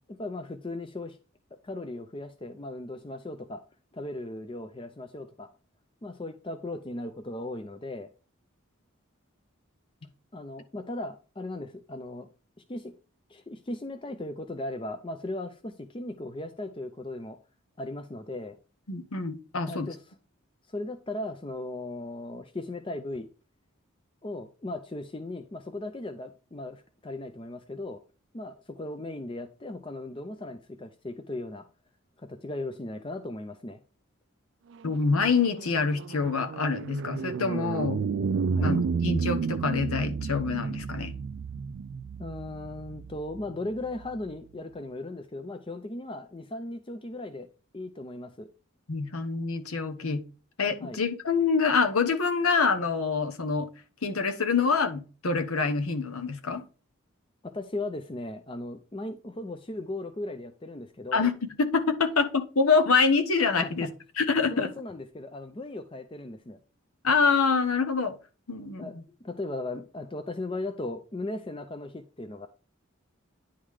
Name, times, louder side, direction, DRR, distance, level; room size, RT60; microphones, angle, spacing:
voice 1, 0.2-1.2 1.6-3.6 3.9-5.5 6.0-8.1 10.3-12.3 12.7-12.9 13.3-17.4 17.8-18.6 19.7-20.0 20.7-23.3 24.2-28.0 28.3-31.7 32.2-33.8 38.5-38.7 42.2-47.5 47.7-48.5 50.8-51.0 57.4-61.3 63.6-63.9 64.5-66.6 68.8-72.5, left 2 dB, 25° left, 7 dB, 0.5 m, -37 dB
voice 2, 18.9-19.9 34.8-38.0 38.6-41.1 48.9-50.2 50.6-53.7 54.0-56.6 61.1-61.3 61.6-63.9 64.2-64.7 67.0-68.1 68.5-68.9, left 4 dB, 85° left, 8 dB, 1.0 m, -26 dB
sound 1, 34.8-44.4, right 5 dB, 55° right, 0.3 m, -32 dB
9.9 x 3.8 x 4.9 m, 0.35 s
head